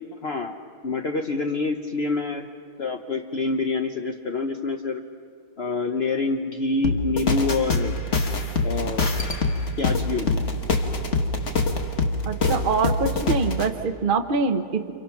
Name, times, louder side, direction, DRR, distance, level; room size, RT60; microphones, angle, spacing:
voice 1, 0.2-0.6 0.8-2.5 2.8-5.0 5.6-7.9 8.6-9.1 9.8-10.4, left 3 dB, 55° left, 4 dB, 0.7 m, -26 dB
sound 1, 6.8-13.7, left 3 dB, 35° left, 1.6 m, -24 dB
voice 2, 12.2-14.9, right 4 dB, 40° right, 5 dB, 0.7 m, -24 dB
29.5 x 27.5 x 5.9 m, 2.3 s
omnidirectional pair, 2.4 m